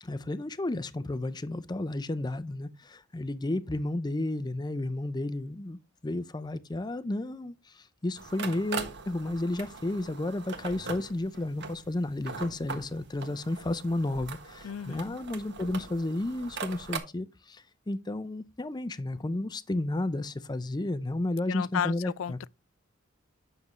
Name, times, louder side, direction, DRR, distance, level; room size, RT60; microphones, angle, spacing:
voice 1, 0.0-22.4, left 1 dB, 20° left, 0.5 m, -32 dB
sound 1, 8.1-17.0, right 4 dB, 60° right, 1.4 m, -41 dB
voice 2, 14.6-15.2 21.5-22.5, left 8 dB, 75° left, 0.3 m, -33 dB
9.6 x 6.6 x 3.1 m
head